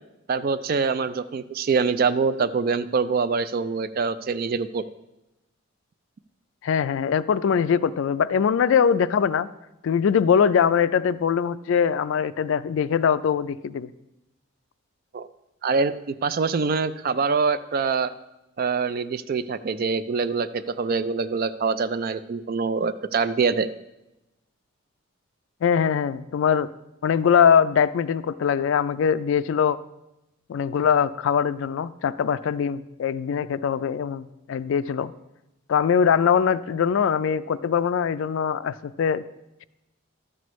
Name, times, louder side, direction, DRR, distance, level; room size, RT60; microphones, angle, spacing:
voice 1, 0.3-4.8 15.1-15.3 15.6-18.1 18.6-23.7, right 5 dB, 45° right, 13 dB, 0.3 m, -24 dB
voice 2, 6.6-9.5 9.8-13.9 25.6-26.7 27.0-29.8 30.5-35.1 35.7-39.2, left 7 dB, 70° left, 15 dB, 0.3 m, -22 dB
12.0 x 7.6 x 3.1 m, 0.94 s
head